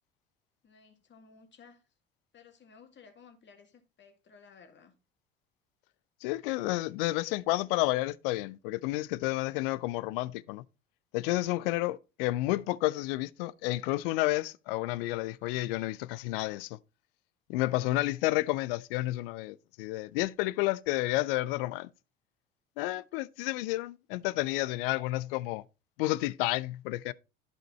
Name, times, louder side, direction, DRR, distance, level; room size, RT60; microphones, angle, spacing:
voice 1, 0.6-1.8 2.3-4.9 22.9-23.2, left 5 dB, 40° left, 2.2 m, -57 dB
voice 2, 6.2-10.6 11.1-16.8 17.5-21.9 22.8-25.6 26.0-27.1, left 18 dB, 65° left, 0.6 m, -31 dB
11.5 x 5.1 x 4.2 m
hypercardioid pair, 65°, 29 cm